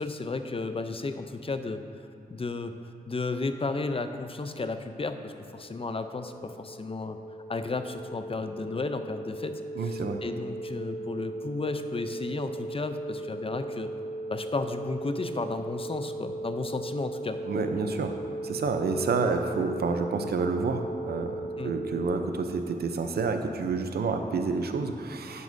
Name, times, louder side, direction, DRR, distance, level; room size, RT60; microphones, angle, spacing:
voice 1, 0.0-1.8 2.3-2.8 3.1-7.2 7.5-13.9 14.3-17.4 21.6-21.7, left 3 dB, 35° left, 8 dB, 0.6 m, -33 dB
sound 1, 5.1-22.0, right 2 dB, 90° left, 0.9 m, -38 dB
voice 2, 9.8-10.2 17.4-18.2 18.4-25.4, right 4 dB, 85° right, 6 dB, 0.6 m, -29 dB
10.0 x 9.3 x 2.7 m, 2.5 s
cardioid pair, 60°, 16 cm